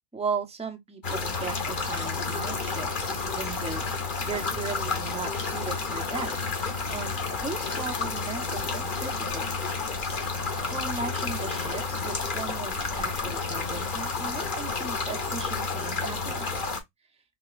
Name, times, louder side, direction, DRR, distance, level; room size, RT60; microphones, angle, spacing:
voice 1, 0.1-6.5 6.9-9.5 10.7-16.5, right 4 dB, 10° right, 0.4 m, -37 dB
sound 1, 1.0-16.8, left 4 dB, 40° left, 0.9 m, -30 dB
4.2 x 3.0 x 2.3 m
omnidirectional pair, 1.6 m